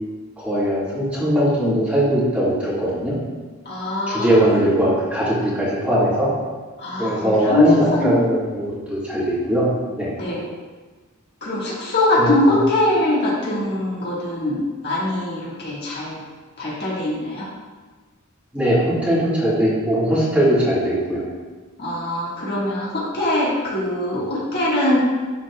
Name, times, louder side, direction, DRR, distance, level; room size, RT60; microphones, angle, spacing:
voice 1, 0.4-3.2 4.1-6.3 7.0-9.7 10.0-10.1 12.2-12.4 18.5-21.2, equal, 5° right, -9 dB, 2.0 m, -20 dB
voice 2, 3.7-4.9 6.8-8.2 10.2-10.4 11.4-16.2 16.6-17.5 21.8-25.0, left 1 dB, 55° left, -6 dB, 1.7 m, -22 dB
11.5 x 4.0 x 2.4 m, 1.3 s
head